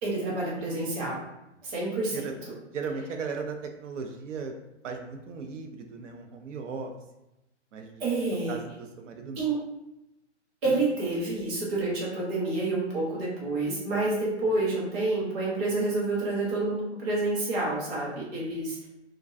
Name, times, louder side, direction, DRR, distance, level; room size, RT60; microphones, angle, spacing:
voice 1, 0.0-1.2 1.6-2.5 8.0-8.6 9.4-9.6 10.6-18.9, right 2 dB, 25° right, -5 dB, 0.7 m, -28 dB
voice 2, 2.7-4.5 4.8-6.9 7.7-8.0 8.5-9.4, right 5 dB, 80° right, 4 dB, 0.5 m, -36 dB
2.4 x 2.1 x 2.4 m, 0.94 s
hypercardioid pair, 145°, 36 cm